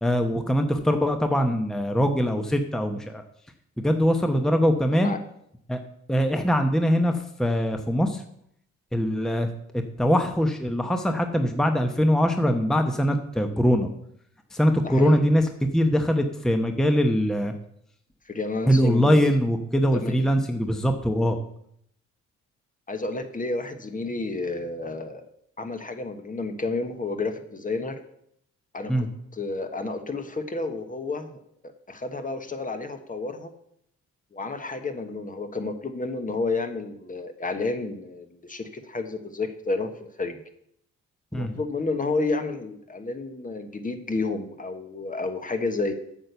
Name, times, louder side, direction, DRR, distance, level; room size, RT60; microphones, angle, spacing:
voice 1, 0.0-3.2 3.8-5.1 5.7-5.8 6.1-8.2 8.9-9.5 9.7-13.9 14.5-15.4 15.7-17.5 18.7-21.4 28.9-29.1 41.3-41.5, equal, ahead, 6 dB, 0.9 m, -22 dB
voice 2, 14.8-15.2 18.3-19.2 19.9-20.2 22.9-25.2 25.6-28.0 28.7-29.1 29.3-33.5 34.3-40.4 41.3-45.9, left 3 dB, 25° left, 7 dB, 1.2 m, -31 dB
8.8 x 6.5 x 6.9 m, 0.72 s
cardioid pair, 90°, 30 cm